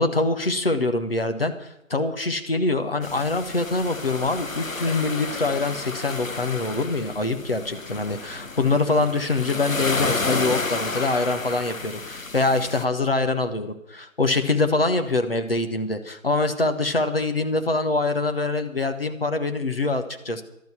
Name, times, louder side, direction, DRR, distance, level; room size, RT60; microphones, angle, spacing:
voice 1, 0.0-20.4, left 2 dB, 45° left, 7 dB, 1.3 m, -24 dB
sound 1, 3.0-12.8, left 3 dB, 70° left, 1.2 m, -31 dB
12.0 x 12.0 x 5.8 m, 0.84 s
figure-of-eight pair, 165°, 41 cm